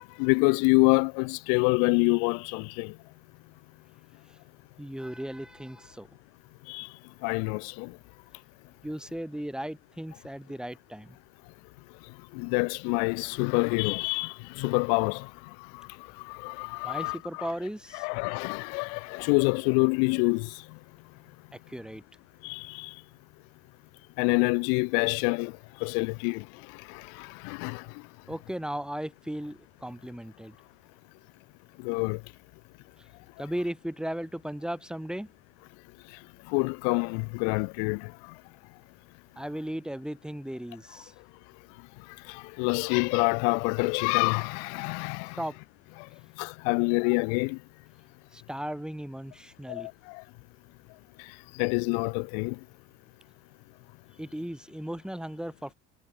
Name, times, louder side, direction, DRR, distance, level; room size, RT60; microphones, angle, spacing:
voice 1, 0.2-2.9 6.7-6.9 7.2-7.9 12.4-15.3 16.3-17.5 17.9-20.5 22.4-22.9 24.2-25.5 25.8-26.4 27.2-27.8 31.8-32.2 36.5-38.1 42.3-45.4 46.4-47.6 49.7-49.9 51.6-52.5, left 40 dB or more, 85° left, 0.6 m, -26 dB
voice 2, 4.8-6.1 8.8-11.2 16.8-18.1 21.5-22.0 28.3-30.6 33.4-35.3 39.4-41.1 45.4-45.6 48.3-49.9 54.2-55.7, equal, 5° right, 3.7 m, -36 dB
cardioid pair, 110°, 30 cm